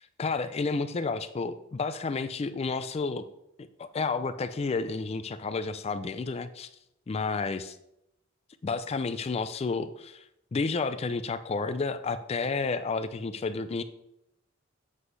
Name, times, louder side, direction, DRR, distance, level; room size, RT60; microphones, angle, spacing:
voice 1, 0.2-3.3 3.6-6.7 7.1-7.8 8.6-10.2 10.5-13.8, left 4 dB, 30° left, 12 dB, 0.4 m, -31 dB
7.9 x 7.4 x 3.2 m, 0.81 s
head